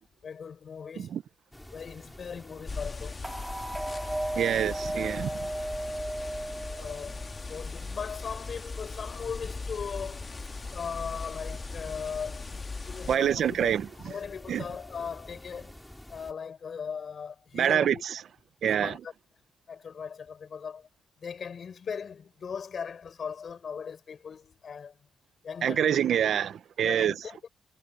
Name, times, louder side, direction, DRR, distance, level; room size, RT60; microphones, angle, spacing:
voice 1, 0.2-1.2 1.7-3.2 5.2-5.3 6.7-10.4 10.7-12.5 12.9-13.7 14.0-15.8 16.1-18.0 18.8-19.1 19.7-20.9 21.2-25.0 25.4-26.0 26.8-27.5, left 6 dB, 55° left, 6.2 m, -39 dB
sound 1, 1.5-16.3, left 1 dB, 10° left, 5.7 m, -49 dB
sound 2, 2.7-13.2, left 3 dB, 35° left, 2.2 m, -39 dB
sound 3, 3.2-7.5, right 1 dB, 10° right, 2.8 m, -35 dB
voice 2, 4.3-5.3 13.1-13.9 14.5-14.6 17.5-18.2 18.6-19.0 25.6-27.2, right 9 dB, 70° right, 1.0 m, -26 dB
supercardioid pair, 60°, 0 cm